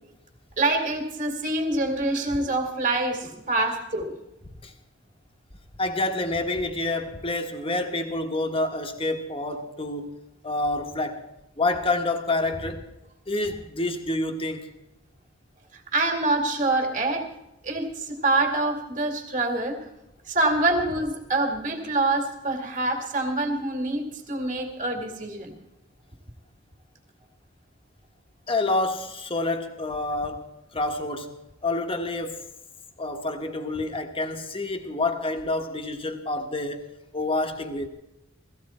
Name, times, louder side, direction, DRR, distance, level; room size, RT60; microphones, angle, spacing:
voice 1, 0.6-4.2 15.7-17.2 17.6-19.8 20.3-25.5, right 2 dB, 40° right, 2.2 m, -26 dB
voice 2, 5.8-10.2 10.4-11.2 11.6-12.8 13.3-14.7 28.5-30.4 30.7-31.3 31.6-32.4 33.0-36.9 37.1-37.9, left 2 dB, 25° left, 1.4 m, -28 dB
17.0 x 15.0 x 4.3 m
head